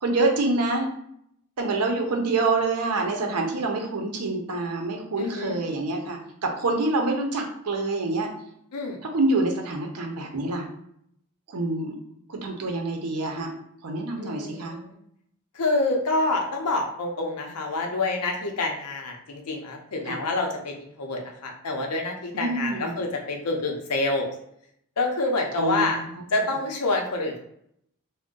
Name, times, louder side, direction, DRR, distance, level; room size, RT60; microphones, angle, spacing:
voice 1, 0.0-0.9 1.6-8.3 9.0-10.7 11.5-12.0 12.3-13.5 13.8-14.8 20.1-20.2 22.3-23.0 25.6-26.2, right 2 dB, 85° right, 2 dB, 0.6 m, -26 dB
voice 2, 5.2-5.6 8.7-9.0 14.2-15.0 15.5-24.3 25.0-26.0 26.3-27.4, left 2 dB, 85° left, 2 dB, 0.6 m, -27 dB
2.5 x 2.1 x 3.6 m, 0.72 s
head